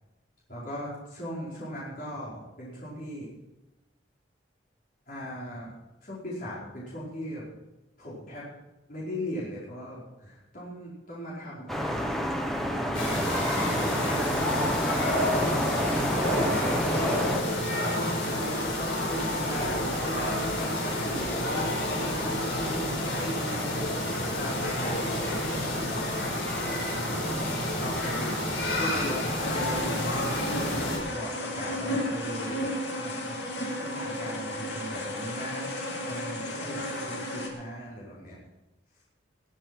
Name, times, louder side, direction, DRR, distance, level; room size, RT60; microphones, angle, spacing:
voice 1, 0.5-3.3 5.1-5.7 6.0-7.5 8.0-8.5 8.9-13.4 13.7-28.5 28.8-32.6 33.0-33.5 33.8-38.4, equal, 45° left, -7 dB, 4.9 m, -39 dB
sound 1, 11.7-17.4, equal, ahead, 1.2 m, -29 dB
sound 2, 12.9-31.0, left 1 dB, 85° left, 4.8 m, -29 dB
sound 3, 29.4-37.5, left 1 dB, 65° left, 2.7 m, -33 dB
19.5 x 7.9 x 6.1 m, 1.0 s
head